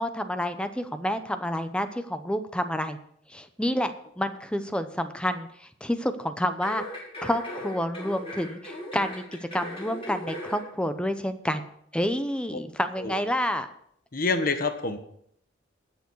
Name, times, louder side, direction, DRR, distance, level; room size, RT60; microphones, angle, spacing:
voice 1, 0.0-3.0 3.3-3.9 4.2-5.5 5.8-6.8 7.2-11.7 11.9-13.7, equal, 5° left, 9 dB, 0.7 m, -29 dB
sound 1, 6.6-10.6 11.0-11.1, equal, 30° left, 5.1 m, -37 dB
voice 2, 14.1-15.0, left 3 dB, 45° left, 7 dB, 1.2 m, -27 dB
19.0 x 7.1 x 4.7 m, 0.69 s
head